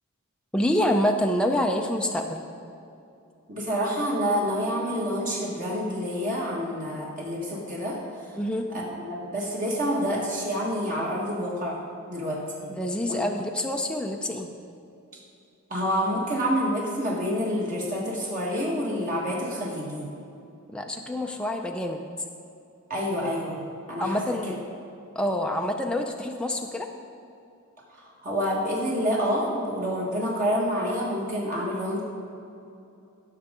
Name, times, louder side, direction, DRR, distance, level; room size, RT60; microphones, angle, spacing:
voice 1, 0.5-2.4 8.4-8.7 12.8-14.5 20.7-22.0 24.0-24.6 25.2-26.9, left 1 dB, 5° left, 2 dB, 0.4 m, -26 dB
voice 2, 3.5-8.3 8.7-11.8 12.1-12.7 13.1-13.2 15.7-20.1 22.9-23.6 23.9-24.5 27.9-32.0, equal, 40° right, -5 dB, 1.7 m, -28 dB
16.0 x 6.5 x 3.8 m, 2.7 s
head